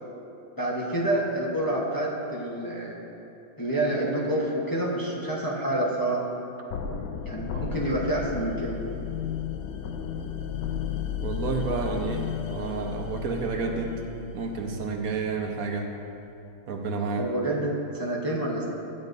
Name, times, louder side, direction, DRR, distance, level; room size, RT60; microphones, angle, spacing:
voice 1, 0.6-3.0 3.6-6.3 7.2-8.8 17.2-18.6, right 1 dB, 25° left, -5 dB, 0.4 m, -28 dB
sound 1, 6.7-15.6, left 8 dB, 80° left, 1.3 m, -34 dB
voice 2, 11.2-14.0 14.3-15.9 16.7-17.3, right 4 dB, 60° right, 2 dB, 1.0 m, -30 dB
13.5 x 9.1 x 2.6 m, 2.8 s
omnidirectional pair, 2.2 m